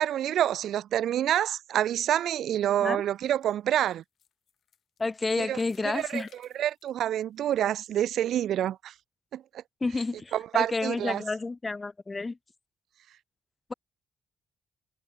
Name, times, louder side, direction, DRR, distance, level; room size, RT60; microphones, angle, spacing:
voice 1, 0.0-4.0 5.4-5.6 5.8-6.2 6.5-8.9 9.3-9.6 10.3-11.2, right 11 dB, 80° right, 0.4 m, -27 dB
sound 1, 2.9-7.9 8.3-8.4 9.0-9.1, left 9 dB, 65° left, 2.7 m, -63 dB
voice 2, 5.0-6.3 9.8-12.4, left 3 dB, 25° left, 0.9 m, -30 dB
cardioid pair, 120°, 0 cm